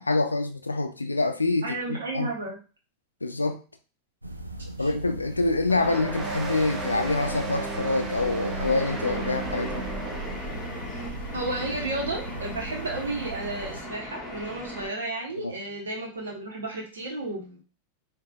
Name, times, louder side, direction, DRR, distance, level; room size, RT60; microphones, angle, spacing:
voice 1, 0.0-2.3 3.2-3.6 4.8-9.9 15.4-15.6, left 2 dB, 80° left, 0.4 m, -26 dB
voice 2, 1.6-2.6 4.8-4.9 11.3-17.6, right 2 dB, 70° right, 1.3 m, -33 dB
sound 1, 4.2-13.8, right 1 dB, 85° right, 0.4 m, -39 dB
sound 2, 5.7-10.8, right 3 dB, 15° right, 0.9 m, -34 dB
sound 3, 8.6-14.9, equal, 5° left, 1.1 m, -38 dB
4.8 x 2.6 x 2.4 m
figure-of-eight pair, 90°, 0 cm